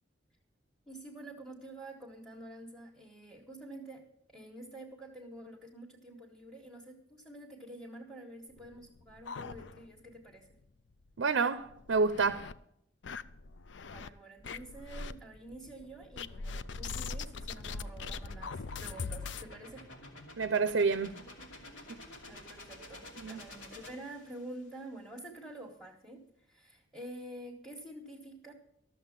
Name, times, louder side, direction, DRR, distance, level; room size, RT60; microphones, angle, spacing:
voice 1, 0.9-10.6 13.9-19.9 22.3-28.5, right 1 dB, ahead, 1.3 m, -48 dB
sound 1, 8.6-10.1 10.5-10.6 10.9-11.0 11.6-12.5 13.0-14.1 14.4-15.1 16.2-19.5, left 4 dB, 70° left, 0.5 m, -41 dB
voice 2, 11.2-12.5 20.4-21.2 23.2-23.4, right 4 dB, 75° right, 0.5 m, -28 dB
sound 2, 14.4-24.7, left 1 dB, 90° left, 2.6 m, -51 dB
13.0 x 7.2 x 7.3 m
head